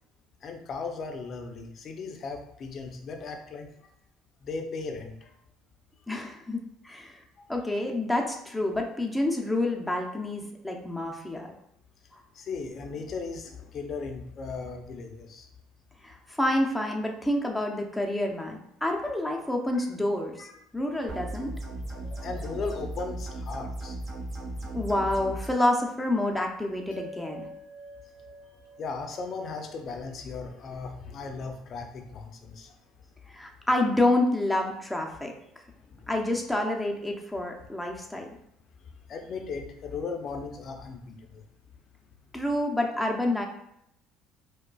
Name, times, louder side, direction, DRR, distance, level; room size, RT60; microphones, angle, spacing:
voice 1, 0.4-3.7 4.4-5.3 12.3-15.5 20.4-20.5 21.9-24.0 28.8-32.7 35.9-36.1 39.1-41.5, left 4 dB, 50° left, 4 dB, 0.6 m, -37 dB
voice 2, 6.1-6.6 6.8-7.2 7.5-11.5 16.0-20.5 20.7-21.6 24.7-27.5 33.3-35.3 36.1-38.3 42.3-43.5, left 1 dB, 5° left, 1 dB, 0.7 m, -28 dB
sound 1, 21.1-25.5, right 1 dB, 35° right, 1.0 m, -36 dB
sound 2, 26.9-31.6, right 1 dB, 90° left, 0.6 m, -48 dB
4.8 x 2.3 x 2.3 m, 0.77 s
supercardioid pair, 85°, 0 cm